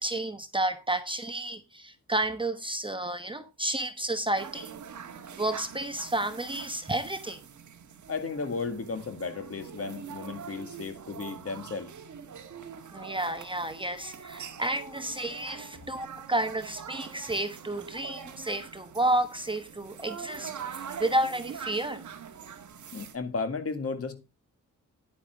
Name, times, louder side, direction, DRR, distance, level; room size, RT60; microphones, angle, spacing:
voice 1, 0.0-4.7 5.4-7.4 12.9-22.0, right 1 dB, 15° right, 1.0 m, -31 dB
sound 1, 4.4-23.2, right 7 dB, 60° right, 1.5 m, -44 dB
voice 2, 8.1-11.9 22.9-24.2, left 4 dB, 45° left, 2.0 m, -34 dB
10.5 x 9.1 x 3.5 m
wide cardioid pair, 125°, 33 cm